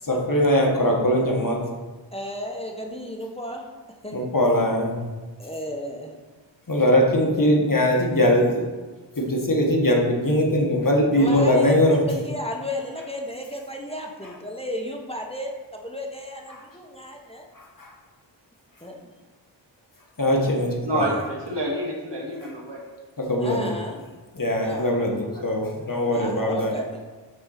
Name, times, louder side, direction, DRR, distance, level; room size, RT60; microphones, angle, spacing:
voice 1, 0.1-1.6 4.1-5.0 6.7-8.7 9.2-12.0 17.5-17.9 20.2-21.1 23.2-23.7 24.3-26.7, left 1 dB, 45° left, -1 dB, 1.7 m, -21 dB
voice 2, 2.1-3.7 4.0-4.2 5.4-6.1 11.1-17.5 18.8-19.1 23.4-24.0 24.6-25.0 26.1-26.9, left 1 dB, 15° left, 0 dB, 1.2 m, -33 dB
voice 3, 20.8-22.8 23.4-23.6 24.5-25.4, right 1 dB, 65° right, -2 dB, 2.1 m, -29 dB
6.7 x 4.5 x 6.6 m, 1.3 s
wide cardioid pair, 55°, 45 cm